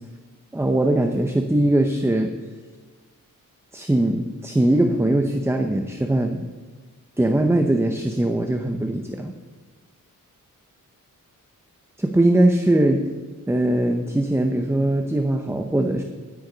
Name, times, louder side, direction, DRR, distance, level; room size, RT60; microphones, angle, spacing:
voice 1, 0.5-2.3 3.7-6.5 7.2-9.3 12.0-13.0 13.5-16.0, right 1 dB, 10° right, 5 dB, 0.6 m, -21 dB
13.0 x 9.9 x 3.9 m, 1.4 s
wide cardioid pair, 145°, 34 cm